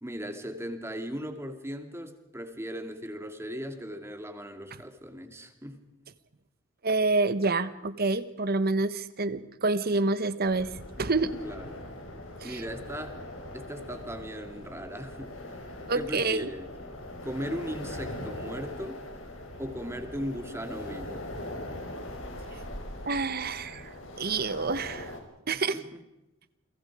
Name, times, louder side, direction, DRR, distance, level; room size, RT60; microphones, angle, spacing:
voice 1, 0.0-5.8 11.4-11.8 12.4-13.1 13.5-15.3 15.9-16.7 17.2-19.0 19.6-21.3 25.7-26.0, equal, 15° right, 7 dB, 2.6 m, -38 dB
voice 2, 6.8-10.7 11.0-11.3 12.4-12.6 15.9-16.5 23.0-23.9 24.2-25.1 25.5-25.8, right 3 dB, 50° right, 14 dB, 1.2 m, -27 dB
sound 1, 10.4-25.2, left 1 dB, 75° left, 5.0 m, -41 dB
29.5 x 23.0 x 5.0 m, 0.92 s
head